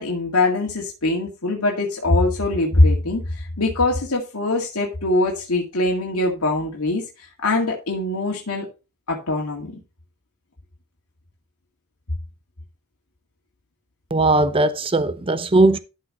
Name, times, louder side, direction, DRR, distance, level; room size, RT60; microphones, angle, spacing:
voice 1, 0.0-8.7 9.1-9.8, left 2 dB, 90° left, 2.1 m, -22 dB
voice 2, 14.1-15.8, right 2 dB, 25° right, 0.6 m, -18 dB
12.5 x 4.6 x 4.3 m
head